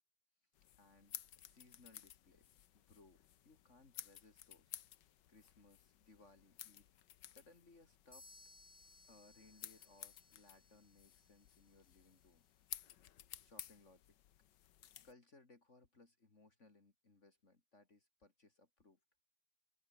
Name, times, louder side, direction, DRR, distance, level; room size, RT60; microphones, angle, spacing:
sound 1, 0.6-15.1, left 11 dB, 65° left, 1.5 m, -55 dB
voice 1, 0.7-4.8 5.3-8.3 9.1-12.4 13.4-14.2 15.0-19.0, left 3 dB, 35° left, 2.8 m, -66 dB
sound 2, 8.1-11.9, left 2 dB, 15° left, 0.8 m, -64 dB
open air
omnidirectional pair, 2.2 m